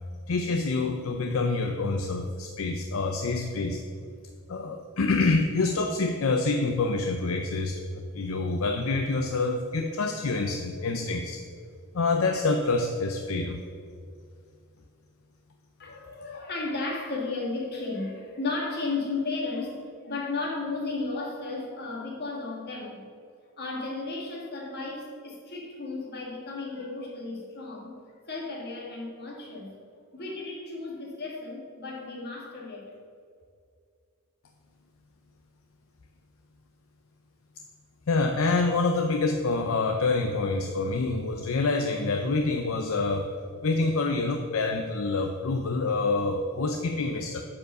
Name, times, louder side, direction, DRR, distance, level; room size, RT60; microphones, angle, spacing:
voice 1, 0.3-3.8 4.5-11.4 11.9-13.6 38.1-43.3 43.6-47.4, left 3 dB, 65° left, 4 dB, 0.6 m, -27 dB
voice 2, 15.8-23.0 23.6-27.9 28.2-29.8 30.1-32.9, left 3 dB, 45° left, -2 dB, 2.0 m, -34 dB
9.5 x 5.0 x 6.6 m, 2.2 s
head